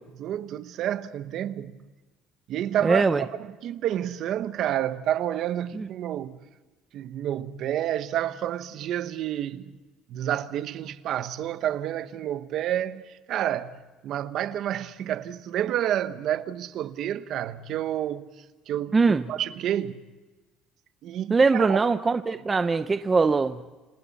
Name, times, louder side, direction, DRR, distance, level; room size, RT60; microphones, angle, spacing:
voice 1, 0.2-1.8 2.5-6.4 6.9-9.8 10.1-18.3 18.7-20.0 21.0-21.8, right 11 dB, 55° right, 1.1 m, -29 dB
voice 2, 2.8-3.2 5.7-5.9 18.9-19.2 21.3-23.6, right 4 dB, 20° right, 0.7 m, -21 dB
30.0 x 26.5 x 4.2 m
cardioid pair, 140°, 0 cm